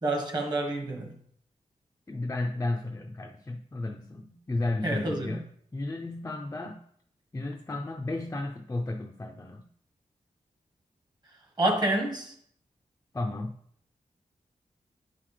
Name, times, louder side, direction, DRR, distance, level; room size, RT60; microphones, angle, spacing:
voice 1, 0.0-1.1 4.8-5.4 11.6-12.3, right 1 dB, 30° right, 1.3 m, -28 dB
voice 2, 2.1-5.4 5.7-6.9 7.3-9.6 13.1-13.6, left 2 dB, 20° left, 0.5 m, -33 dB
9.4 x 5.6 x 3.3 m
wide cardioid pair, 145°, 14 cm